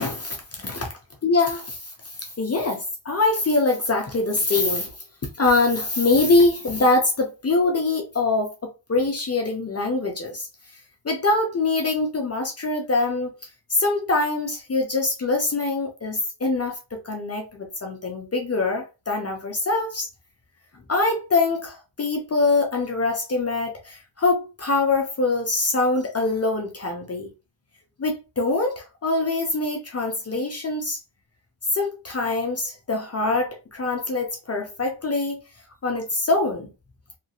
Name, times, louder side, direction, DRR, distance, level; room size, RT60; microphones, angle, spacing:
voice 1, 0.0-0.9 1.2-4.9 5.4-10.5 11.0-13.4 13.7-20.1 20.9-27.3 28.0-31.0 31.7-35.4 35.8-36.7, left 3 dB, 35° left, 0.5 m, -24 dB
2.8 x 2.4 x 2.7 m
wide cardioid pair, 165°, 46 cm